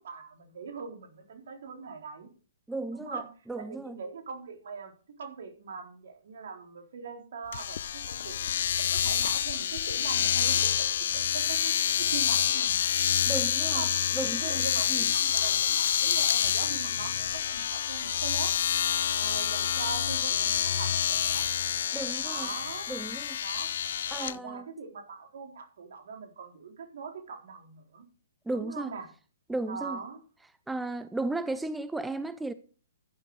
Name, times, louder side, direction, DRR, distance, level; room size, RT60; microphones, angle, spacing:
voice 1, 0.0-2.3 2.9-3.3 3.6-4.9 5.2-8.5 8.8-10.9 11.1-12.8 13.6-14.0 14.4-18.5 19.1-21.5 22.2-22.9 23.4-23.7 24.1-28.0 28.5-29.1 29.7-30.2, right 5 dB, 65° right, 4.0 m, -41 dB
voice 2, 2.7-3.2 3.5-4.0 13.3-13.8 14.1-15.1 21.9-22.5 22.9-23.4 24.1-24.7 28.5-28.9 29.5-30.0 30.7-32.5, right 2 dB, 5° right, 0.6 m, -34 dB
Domestic sounds home sounds, 7.5-24.3, left 9 dB, 65° left, 0.5 m, -28 dB
12.0 x 10.5 x 4.9 m
hypercardioid pair, 145°, 0 cm